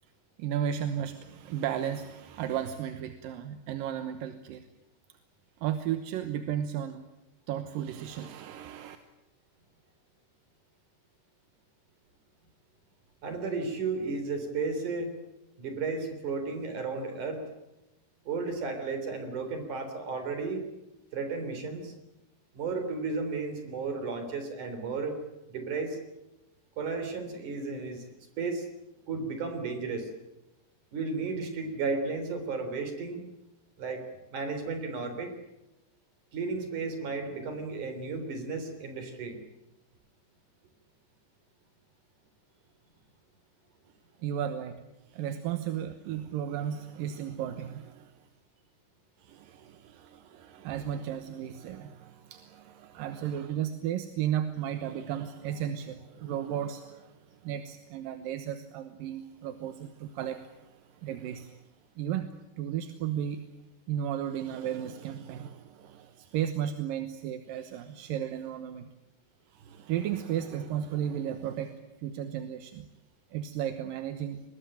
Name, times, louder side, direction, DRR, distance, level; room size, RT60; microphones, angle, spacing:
voice 1, 0.4-4.6 5.6-7.0 7.5-9.0 44.2-44.8 45.1-48.1 49.2-57.2 57.4-61.5 62.0-62.3 62.6-63.4 63.9-68.8 69.5-71.7 72.0-72.9 73.3-74.4, right 10 dB, 70° right, 9 dB, 2.6 m, -34 dB
voice 2, 13.2-15.1 15.6-17.4 18.3-20.6 21.1-21.9 22.5-25.2 25.5-26.0 26.8-28.7 29.1-30.1 30.9-33.2 33.8-34.0 34.3-35.3 36.3-39.4, right 4 dB, 50° right, 7 dB, 4.9 m, -33 dB
23.5 x 20.5 x 9.0 m, 0.96 s
omnidirectional pair, 4.6 m